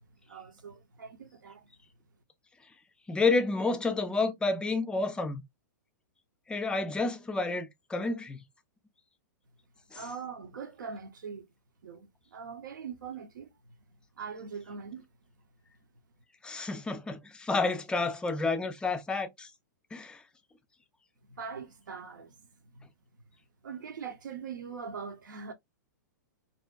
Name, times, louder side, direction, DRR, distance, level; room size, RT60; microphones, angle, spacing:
voice 1, 0.3-1.7 9.9-11.5 11.8-13.7 14.2-15.0 21.3-22.4 22.7-22.8 23.6-25.5, right 6 dB, 80° right, 0.6 m, -42 dB
voice 2, 3.1-5.4 6.5-8.4 9.9-10.0 16.4-19.5 19.9-20.2, left 3 dB, 10° left, 0.3 m, -30 dB
2.6 x 2.1 x 2.3 m
hypercardioid pair, 125°, 10 cm